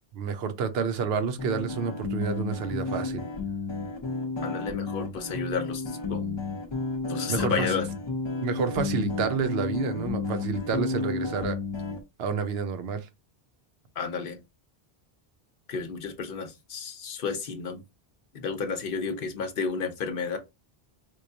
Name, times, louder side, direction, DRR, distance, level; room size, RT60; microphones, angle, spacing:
voice 1, 0.1-3.2 7.3-7.7 8.4-11.6 12.2-13.1, right 5 dB, 75° right, 0.8 m, -29 dB
sound 1, 1.4-12.0, left 3 dB, 30° left, 0.6 m, -32 dB
voice 2, 4.4-6.4 7.1-7.9 14.0-14.4 15.7-17.8 18.3-20.4, left 5 dB, 60° left, 0.9 m, -32 dB
4.6 x 2.2 x 2.6 m
omnidirectional pair, 1.1 m